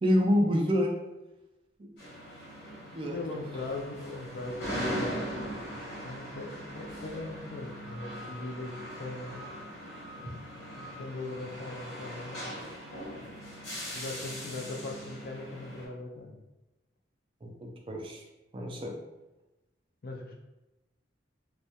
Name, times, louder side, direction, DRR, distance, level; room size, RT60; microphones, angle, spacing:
voice 1, 0.0-0.9 1.8-1.9 2.9-3.2 17.4-18.2 18.5-18.9, equal, 25° right, 1 dB, 0.3 m, -27 dB
sound 1, 2.0-15.9, equal, 70° left, 1.0 m, -40 dB
voice 2, 3.1-5.2 6.0-9.4 9.8-9.9 10.2-10.4 10.7-12.5 13.9-16.4 20.0-20.3, left 2 dB, 50° left, 1 dB, 0.4 m, -40 dB
2.2 x 2.1 x 2.7 m, 1.0 s
head